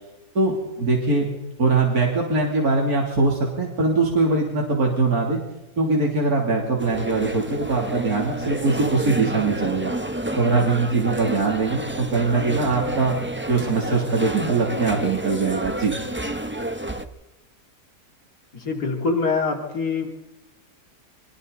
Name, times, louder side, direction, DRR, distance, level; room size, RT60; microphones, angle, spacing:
voice 1, 0.4-1.3 1.6-5.4 5.8-9.9 10.4-13.2 13.5-15.9, right 3 dB, 65° right, -2 dB, 3.6 m, -22 dB
sound 1, 6.8-17.0, right 1 dB, 10° right, 1.0 m, -30 dB
voice 2, 18.5-20.1, left 4 dB, 75° left, 0 dB, 3.4 m, -24 dB
29.0 x 24.0 x 4.1 m, 1.0 s
omnidirectional pair, 1.7 m